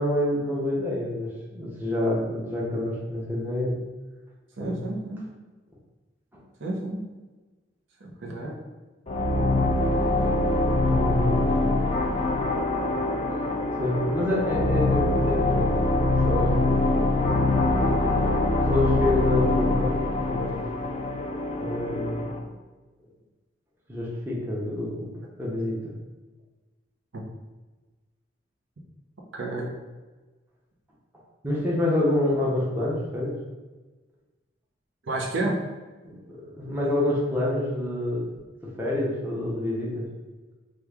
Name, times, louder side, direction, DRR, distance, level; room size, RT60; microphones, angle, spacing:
voice 1, 0.0-3.8 4.6-4.8 10.8-11.6 13.8-15.6 15.9-17.4 18.5-20.5 21.6-22.5 23.9-25.1 25.4-25.9 31.4-33.3 36.0-38.3 38.8-40.0, left 1 dB, 10° right, -5 dB, 0.6 m, -28 dB
voice 2, 4.6-5.2 6.6-7.1 8.0-8.6 27.1-27.2 29.3-29.7 35.1-35.6, right 2 dB, 90° right, -2 dB, 0.7 m, -30 dB
sound 1, 9.1-22.4, left 2 dB, 30° left, 0.3 m, -24 dB
3.0 x 2.3 x 3.5 m, 1.3 s
head